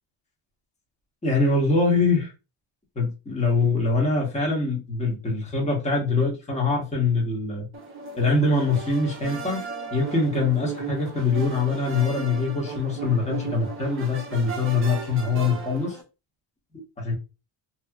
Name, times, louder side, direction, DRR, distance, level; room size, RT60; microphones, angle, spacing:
voice 1, 1.2-2.3 3.0-7.7 8.2-9.6 9.9-16.0 16.7-17.2, left 3 dB, 15° left, -2 dB, 1.1 m, -23 dB
sound 1, 7.7-16.0, right 4 dB, 25° right, 0.8 m, -36 dB
2.9 x 2.8 x 2.3 m, 0.29 s
cardioid pair, 125°, 49 cm